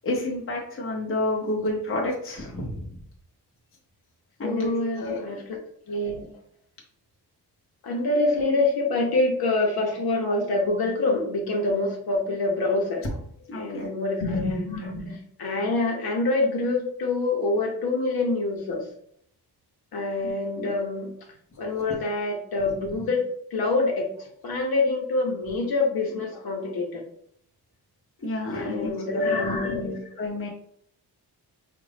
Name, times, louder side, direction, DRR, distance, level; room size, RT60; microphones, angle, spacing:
voice 1, 0.0-2.9 4.4-5.2 13.5-13.9 20.2-20.3 20.6-20.7 28.2-29.2 29.8-30.5, left 1 dB, 30° left, -2 dB, 0.9 m, -30 dB
voice 2, 4.4-5.6 5.9-6.3 7.8-13.0 13.5-18.9 19.9-21.1 21.6-23.2 23.5-27.0 28.5-30.2, left 2 dB, 65° left, 0 dB, 1.1 m, -26 dB
5.1 x 2.5 x 3.3 m, 0.66 s
wide cardioid pair, 170°, 40 cm